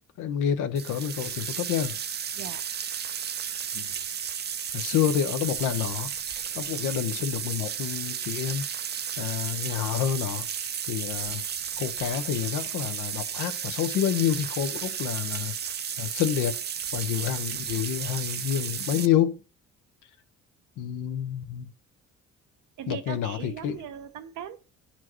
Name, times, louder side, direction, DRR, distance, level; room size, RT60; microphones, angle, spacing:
voice 1, 0.2-2.0 3.7-3.9 4.7-6.1 6.5-8.7 9.2-10.4 10.9-11.4 11.8-15.5 16.0-16.6 16.9-19.4 20.8-21.7 22.9-23.8, left 10 dB, 90° left, 0.8 m, -28 dB
sound 1, 0.8-19.1, right 8 dB, 35° right, 0.4 m, -33 dB
voice 2, 2.3-2.6 22.8-24.6, right 9 dB, 80° right, 0.8 m, -39 dB
9.7 x 4.4 x 3.0 m
cardioid pair, 90°, 30 cm